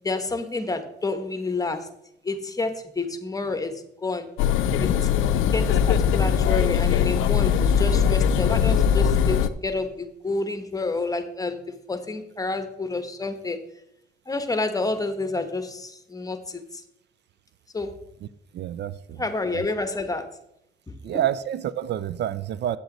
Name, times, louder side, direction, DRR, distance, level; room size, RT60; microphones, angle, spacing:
voice 1, 0.0-1.9 2.2-4.3 4.8-13.6 14.3-16.8 17.7-17.9 19.2-20.2 20.9-21.0, left 3 dB, 20° left, 9 dB, 1.1 m, -29 dB
sound 1, 4.4-9.5, left 8 dB, 90° left, 0.5 m, -21 dB
voice 2, 18.5-19.2 19.5-19.6 21.0-22.8, right 11 dB, 60° right, 16 dB, 0.4 m, -28 dB
8.4 x 7.9 x 3.9 m, 0.79 s
cardioid pair, 90°, 20 cm